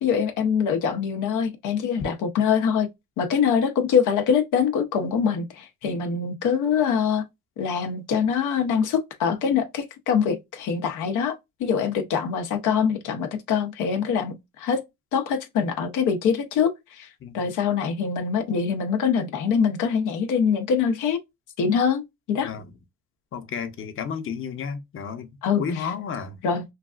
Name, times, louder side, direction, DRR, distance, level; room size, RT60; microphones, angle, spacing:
voice 1, 0.0-2.9 3.2-7.2 7.6-14.8 15.1-17.1 17.3-21.2 21.6-22.0 22.3-22.5 25.4-25.9 26.4-26.6, left 7 dB, 85° left, 0.7 m, -24 dB
voice 2, 23.3-25.3 25.6-26.4, left 6 dB, 45° left, 0.7 m, -32 dB
3.2 x 2.4 x 2.3 m
cardioid pair, 90°, 30 cm